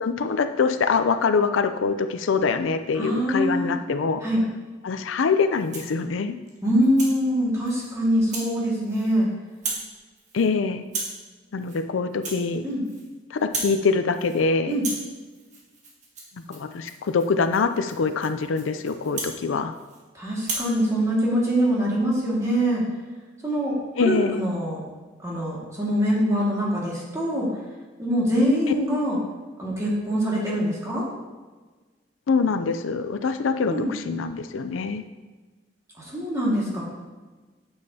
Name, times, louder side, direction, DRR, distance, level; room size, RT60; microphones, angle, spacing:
voice 1, 0.0-4.2 4.8-6.4 10.3-10.9 11.5-12.6 13.3-14.8 16.5-19.8 24.0-24.4 32.3-35.0, left 5 dB, 90° left, 9 dB, 0.4 m, -24 dB
voice 2, 2.9-3.7 4.2-4.5 6.6-9.3 12.6-12.8 14.7-14.8 20.1-22.8 23.4-24.8 25.2-27.5 28.0-29.2 29.6-31.1 33.7-33.9 36.0-36.8, equal, 15° right, -5 dB, 1.9 m, -24 dB
Rattle (instrument), 5.5-6.0 6.5-7.2 7.6-7.9 8.3-8.5 8.8-9.2 9.5-9.9 10.2-10.5 10.8-11.2 11.6-11.8 12.1-13.1 13.4-13.8 14.1-14.4 14.7-20.0 20.4-20.7, right 3 dB, 40° right, 1.4 m, -35 dB
9.6 x 7.3 x 2.8 m, 1.3 s
head